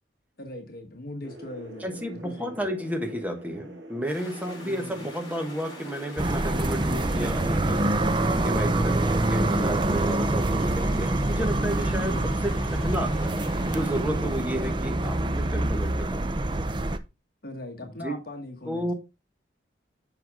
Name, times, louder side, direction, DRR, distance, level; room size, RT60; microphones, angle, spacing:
voice 1, 0.4-2.7 4.6-5.0 12.0-12.4 17.4-18.9, left 1 dB, 50° left, 1.3 m, -40 dB
sound 1, 1.2-13.6, right 1 dB, 75° right, 1.9 m, -46 dB
voice 2, 1.8-7.8 8.3-9.0 9.3-13.1 13.7-16.5 18.0-18.1 18.7-18.9, equal, 10° right, 1.4 m, -32 dB
sound 2, 4.1-14.0, left 2 dB, 20° left, 4.6 m, -46 dB
sound 3, 6.2-17.0, right 1 dB, 25° right, 0.6 m, -25 dB
7.9 x 5.8 x 3.6 m
head